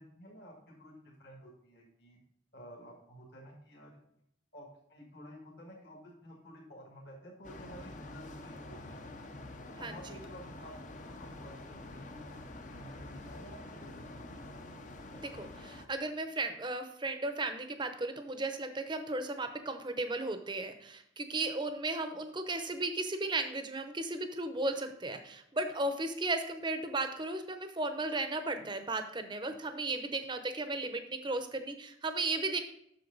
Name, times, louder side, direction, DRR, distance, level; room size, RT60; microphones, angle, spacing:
voice 1, 0.0-2.2 2.5-3.9 4.5-9.3 9.7-14.6 28.5-28.6, equal, 55° left, -2 dB, 1.7 m, -52 dB
sound 1, 7.4-15.9, left 2 dB, 40° left, 0.7 m, -47 dB
voice 2, 15.1-32.6, right 2 dB, 25° right, 8 dB, 0.7 m, -35 dB
7.8 x 6.7 x 3.9 m, 0.72 s
head